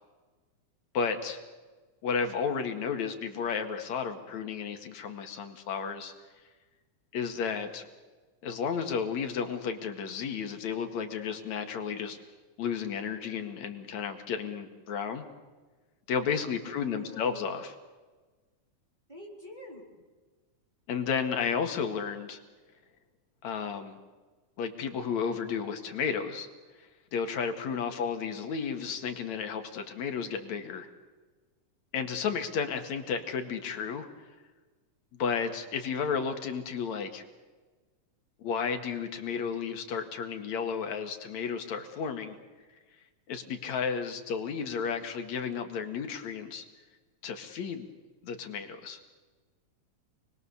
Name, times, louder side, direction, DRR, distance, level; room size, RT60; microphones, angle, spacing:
voice 1, 0.9-1.4 2.0-6.1 7.1-7.8 8.4-12.2 12.6-15.2 16.1-17.7 20.9-22.4 23.4-24.0 24.6-26.5 27.1-30.9 31.9-34.1 35.2-37.2 38.4-42.4 43.3-46.6 47.2-47.9 48.2-49.0, left 6 dB, 70° left, 6 dB, 3.1 m, -32 dB
voice 2, 16.6-17.5 19.1-20.0, left 1 dB, 15° right, -2 dB, 4.1 m, -47 dB
29.0 x 21.0 x 7.1 m, 1.3 s
omnidirectional pair, 3.4 m